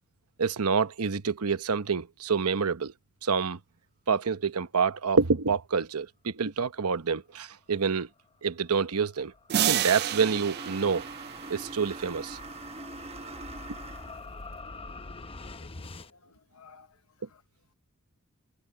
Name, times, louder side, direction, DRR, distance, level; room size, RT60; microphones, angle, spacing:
voice 1, 0.4-2.9 3.2-3.6 4.1-8.1 8.4-9.3 9.7-11.1 11.5-12.4, right 5 dB, 85° right, 0.9 m, -27 dB
sound 1, 8.3-16.1, left 3 dB, 25° left, 0.7 m, -46 dB
sound 2, 9.5-12.0, right 11 dB, 45° right, 0.4 m, -30 dB
sound 3, 9.9-14.3, right 3 dB, 30° right, 1.1 m, -43 dB
voice 2, 15.4-16.9, left 5 dB, 70° left, 0.9 m, -56 dB
head